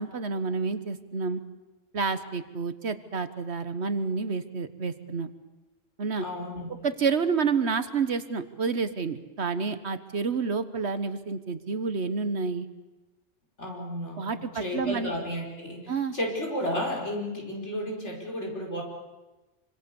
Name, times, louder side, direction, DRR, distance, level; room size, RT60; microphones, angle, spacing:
voice 1, 0.0-1.4 1.9-5.3 6.0-6.2 6.8-12.7 14.2-15.1 15.9-16.1, right 5 dB, 60° right, 11 dB, 1.5 m, -29 dB
voice 2, 6.1-6.7 13.6-18.8, left 1 dB, 65° left, 0 dB, 5.7 m, -33 dB
26.5 x 26.0 x 7.0 m, 1.1 s
omnidirectional pair, 1.3 m